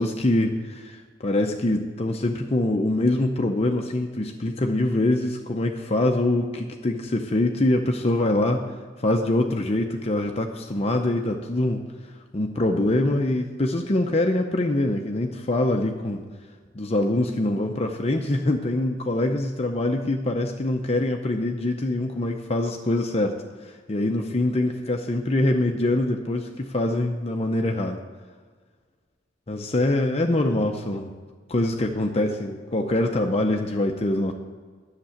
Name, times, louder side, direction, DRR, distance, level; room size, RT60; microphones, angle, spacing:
voice 1, 0.0-8.6 9.0-11.8 12.3-16.2 16.7-28.0 29.5-31.1 31.5-34.3, left 1 dB, 35° left, 3 dB, 0.7 m, -24 dB
10.5 x 6.7 x 8.4 m, 1.6 s
head